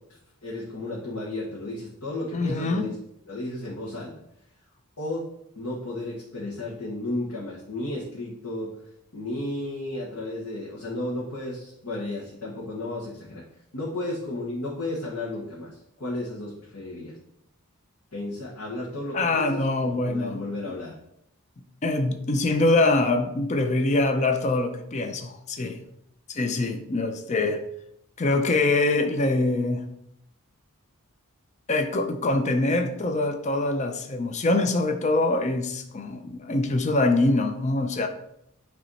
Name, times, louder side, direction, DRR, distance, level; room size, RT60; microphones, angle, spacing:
voice 1, 0.4-3.0 3.3-4.1 5.0-5.3 5.6-8.7 9.1-13.4 13.7-17.1 18.1-21.0, left 2 dB, 80° left, -6 dB, 1.6 m, -33 dB
voice 2, 2.3-2.9 19.1-20.7 21.8-25.8 26.3-27.6 28.2-29.8 31.7-38.1, left 2 dB, 30° left, 6 dB, 0.5 m, -24 dB
9.0 x 3.3 x 4.1 m, 0.76 s
head